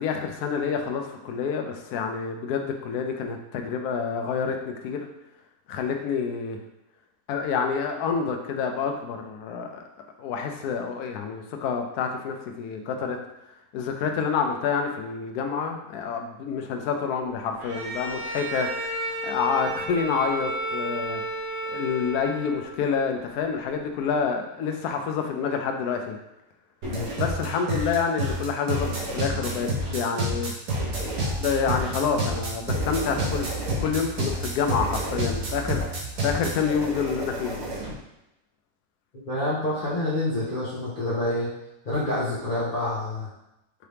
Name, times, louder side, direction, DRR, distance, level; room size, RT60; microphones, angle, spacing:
voice 1, 0.0-5.1 5.7-6.6 7.3-9.8 10.2-13.2 13.7-18.7 19.2-21.2 21.7-26.2 27.2-30.6 31.2-35.8 36.2-37.7, left 6 dB, 75° left, 4 dB, 1.1 m, -28 dB
Bowed string instrument, 17.6-22.9, right 1 dB, 70° right, 0.5 m, -32 dB
sound 1, 26.8-37.9, right 1 dB, 90° right, 1.5 m, -29 dB
voice 2, 39.3-41.5 41.8-43.3, left 1 dB, 40° left, -10 dB, 1.0 m, -27 dB
4.7 x 2.8 x 3.3 m, 0.90 s
omnidirectional pair, 1.6 m